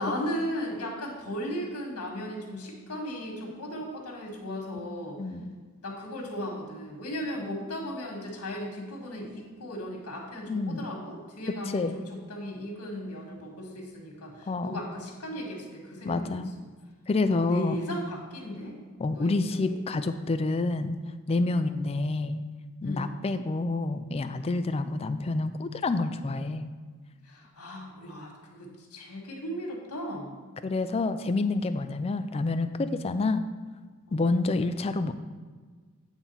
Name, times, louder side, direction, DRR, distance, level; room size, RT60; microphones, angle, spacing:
voice 1, 0.0-5.2 5.8-16.4 17.3-18.7 19.1-19.6 22.8-23.1 24.4-24.6 27.2-30.3 34.1-34.2, equal, 85° left, 0 dB, 1.7 m, -36 dB
voice 2, 5.2-5.6 10.5-10.9 11.7-12.0 14.5-14.9 16.0-16.5 17.1-17.8 19.0-20.9 21.3-22.4 22.8-26.7 30.6-33.4 34.1-35.1, left 3 dB, 25° left, 10 dB, 0.3 m, -28 dB
8.9 x 3.6 x 5.5 m, 1.5 s
head